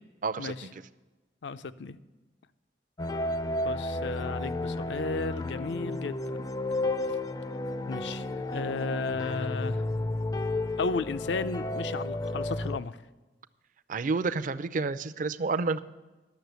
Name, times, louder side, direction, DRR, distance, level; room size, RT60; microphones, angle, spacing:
voice 1, 0.2-0.7 13.9-15.8, right 4 dB, 50° right, 13 dB, 0.5 m, -29 dB
voice 2, 1.4-2.0 3.6-6.2 7.9-8.3 8.5-9.8 10.8-13.0, left 4 dB, 80° left, 13 dB, 0.5 m, -33 dB
sound 1, 3.0-12.8, left 2 dB, 20° left, 0.4 m, -32 dB
11.5 x 6.8 x 8.0 m, 1.2 s
head